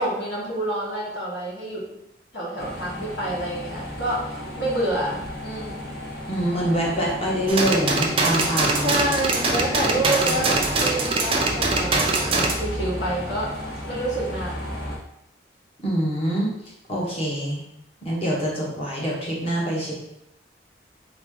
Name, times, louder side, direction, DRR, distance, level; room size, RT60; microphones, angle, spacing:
voice 1, 0.0-1.8 2.3-5.9 8.8-13.5 13.9-14.7, right 1 dB, 75° left, -6 dB, 1.5 m, -28 dB
sound 1, 2.6-15.0, equal, 55° left, 1.0 m, -34 dB
voice 2, 6.3-9.0 10.3-10.4 15.8-16.5 16.9-17.6 18.0-19.9, equal, 30° left, -5 dB, 1.1 m, -25 dB
sound 2, 7.5-12.5, right 3 dB, 30° right, 0.5 m, -23 dB
3.7 x 3.1 x 3.7 m, 0.82 s
head